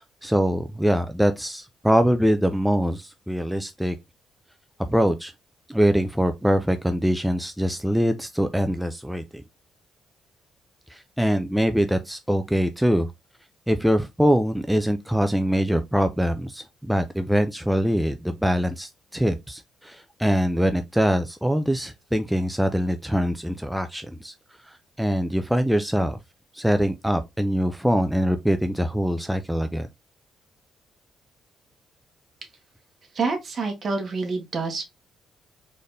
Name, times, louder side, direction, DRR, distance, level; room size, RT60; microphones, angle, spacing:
voice 1, 0.0-3.9 4.9-5.3 5.7-9.2 10.9-13.1 13.7-24.3 24.6-26.2 26.5-29.9, equal, 5° right, 0.4 m, -23 dB
voice 2, 33.1-34.8, right 4 dB, 45° right, 1.4 m, -27 dB
4.0 x 3.3 x 2.6 m
cardioid pair, 90°, 0 cm